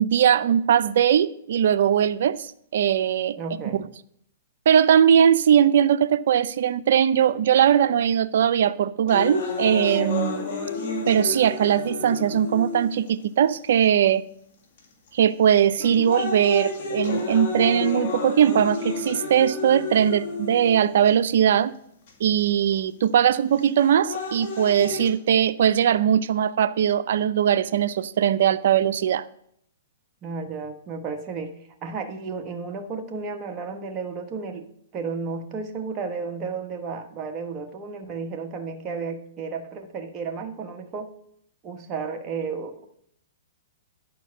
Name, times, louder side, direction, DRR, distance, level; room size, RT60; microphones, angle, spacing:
voice 1, 0.0-3.4 4.7-10.5 11.1-14.2 15.1-21.7 22.2-29.2, right 9 dB, 65° right, 0.5 m, -20 dB
voice 2, 3.4-3.8 30.2-31.5 31.8-34.7 34.9-41.1 41.6-42.9, right 4 dB, 30° right, 1.3 m, -33 dB
sound 1, 9.1-13.1 13.8-13.9 14.8-15.1 15.6-21.1 22.1-22.2 23.6-25.1, left 4 dB, 50° left, 2.3 m, -31 dB
10.5 x 4.6 x 6.4 m
hypercardioid pair, 140°, 0 cm